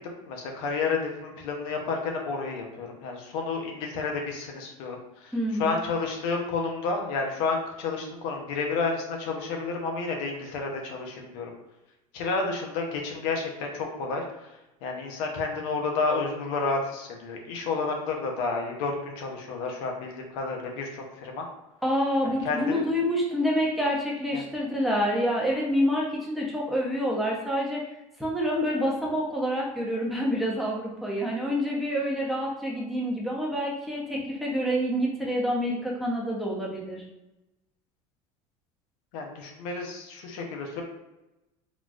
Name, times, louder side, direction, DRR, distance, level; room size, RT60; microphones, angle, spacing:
voice 1, 0.2-5.3 5.6-11.5 12.1-14.2 14.8-21.4 22.4-22.8 24.3-24.4 39.1-40.8, left 4 dB, 75° left, 1 dB, 0.7 m, -30 dB
voice 2, 5.3-5.8 21.8-27.8 28.2-37.0, equal, ahead, -4 dB, 0.8 m, -27 dB
4.0 x 2.2 x 2.4 m, 0.96 s
supercardioid pair, 90°, 18 cm